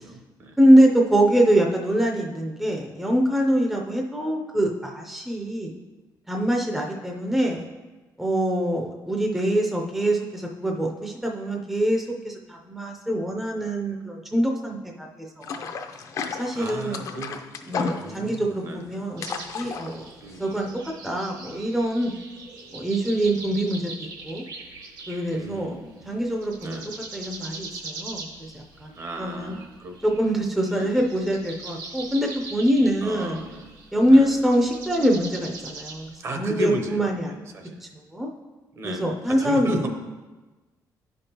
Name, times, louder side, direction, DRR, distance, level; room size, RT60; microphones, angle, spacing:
voice 1, 0.0-0.6 16.5-17.4 17.7-19.0 20.2-20.5 25.3-26.2 26.6-26.9 28.9-30.4 30.7-31.0 33.0-33.7 34.1-34.4 36.2-37.2 37.5-37.8 38.7-39.9, right 1 dB, 40° right, 4 dB, 0.7 m, -34 dB
voice 2, 0.6-5.7 6.3-7.6 8.2-15.7 16.4-17.1 17.7-19.2 19.5-20.1 20.4-20.7 21.0-22.1 22.7-24.4 25.1-25.8 26.1-26.8 27.1-29.6 30.0-33.4 33.9-36.1 36.4-37.5 37.8-38.3 38.8-39.7, right 1 dB, 5° right, 1 dB, 0.5 m, -24 dB
sound 1, 15.4-20.7, left 5 dB, 50° left, 0.5 m, -33 dB
sound 2, 19.2-25.7 26.0-36.2, right 3 dB, 65° right, 1.1 m, -41 dB
10.5 x 5.2 x 2.8 m, 1.2 s
cardioid pair, 160°, 7 cm